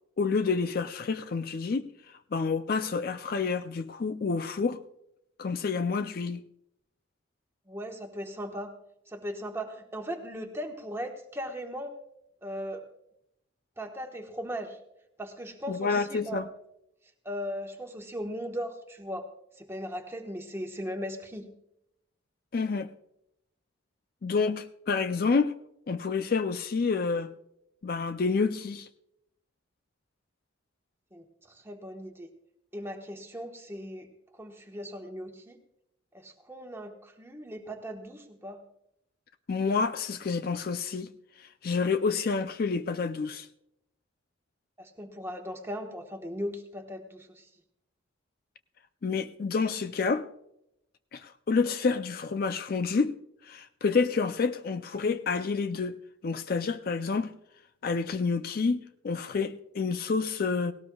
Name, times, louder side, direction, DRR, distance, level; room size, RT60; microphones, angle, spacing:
voice 1, 0.2-1.9 2.3-4.8 5.4-6.4 15.7-16.5 22.5-22.9 24.2-25.5 25.9-27.3 27.8-28.9 39.5-41.1 41.4-43.5 49.0-50.3 51.1-53.2 53.5-57.3 57.8-60.7, left 4 dB, 50° left, 0.4 m, -28 dB
voice 2, 7.7-8.7 9.1-12.0 12.4-12.8 13.8-14.8 15.2-16.4 17.2-19.3 19.6-21.5 31.1-32.3 32.7-34.1 34.3-35.6 36.1-38.6 44.8-47.5, equal, 15° right, 1.2 m, -38 dB
18.0 x 18.0 x 2.3 m
head